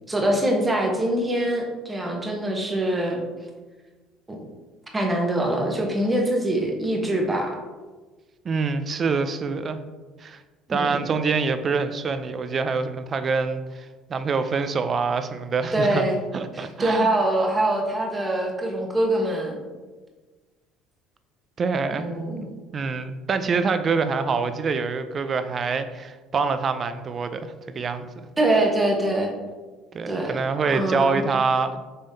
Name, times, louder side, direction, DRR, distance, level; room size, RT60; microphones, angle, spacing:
voice 1, 0.1-3.2 4.3-4.4 4.9-7.6 10.7-11.0 15.7-16.2 16.5-19.6 21.9-22.4 28.4-29.3 30.1-30.4 30.6-31.3, right 1 dB, 20° right, 1 dB, 1.0 m, -24 dB
voice 2, 8.4-9.8 10.2-10.4 10.7-16.1 16.3-17.1 21.6-22.1 22.4-28.1 29.9-31.8, right 4 dB, 40° right, 10 dB, 0.4 m, -25 dB
5.3 x 3.4 x 2.7 m, 1.3 s
hypercardioid pair, 75°, 0 cm